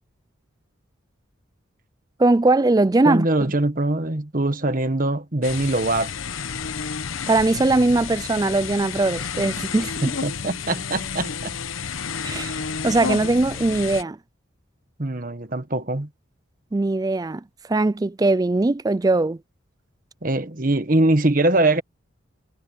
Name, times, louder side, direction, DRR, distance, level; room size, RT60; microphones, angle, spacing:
voice 1, 2.2-3.3 7.3-10.1 12.2-12.5 12.8-14.2 16.7-17.4 17.7-19.4, right 2 dB, 20° right, 0.3 m, -20 dB
voice 2, 3.0-6.1 10.0-11.6 15.0-16.1 20.2-21.8, right 2 dB, 40° right, 1.4 m, -22 dB
sound 1, 5.4-14.0, left 6 dB, 85° left, 1.0 m, -31 dB
head